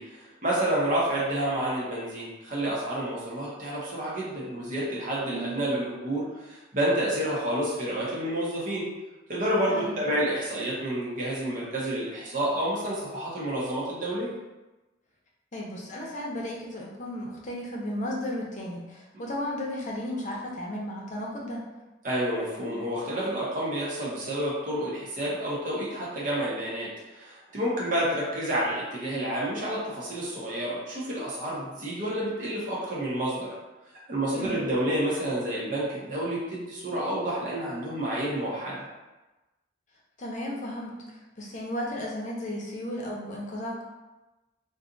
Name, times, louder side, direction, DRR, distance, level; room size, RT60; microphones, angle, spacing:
voice 1, 0.0-8.9 9.3-14.4 22.0-33.5 34.1-38.8, right 1 dB, 45° right, -6 dB, 0.9 m, -29 dB
voice 2, 5.3-5.6 9.7-10.0 15.5-21.6 34.3-34.6 40.2-40.9 41.4-43.8, left 1 dB, 40° left, -3 dB, 0.7 m, -34 dB
2.6 x 2.4 x 3.8 m, 1.1 s
head